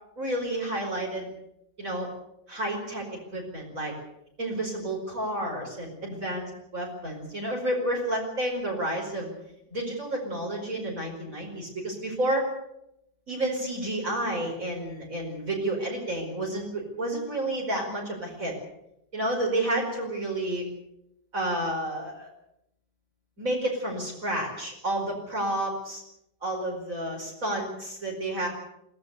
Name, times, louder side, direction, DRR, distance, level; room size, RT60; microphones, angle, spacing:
voice 1, 0.2-1.3 1.8-2.1 2.5-3.9 4.4-6.5 6.7-9.3 9.7-12.5 13.3-18.5 19.1-20.7 21.3-22.3 23.4-26.0 26.4-28.5, right 1 dB, 40° right, -1 dB, 5.3 m, -30 dB
22.0 x 17.5 x 8.2 m, 0.82 s
omnidirectional pair, 2.1 m